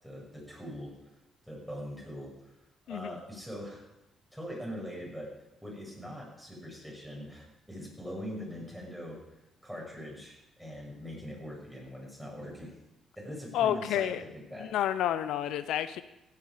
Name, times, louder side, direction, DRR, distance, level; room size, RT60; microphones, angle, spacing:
voice 1, 0.0-0.9 1.4-2.3 2.9-3.8 4.3-5.3 5.6-9.2 9.6-12.8 13.1-14.7, equal, 5° right, -2 dB, 6.5 m, -42 dB
voice 2, 2.9-3.2 13.5-14.2 14.6-16.0, left 11 dB, 85° left, 12 dB, 0.6 m, -30 dB
16.0 x 9.5 x 5.0 m, 0.91 s
cardioid pair, 90°, 0 cm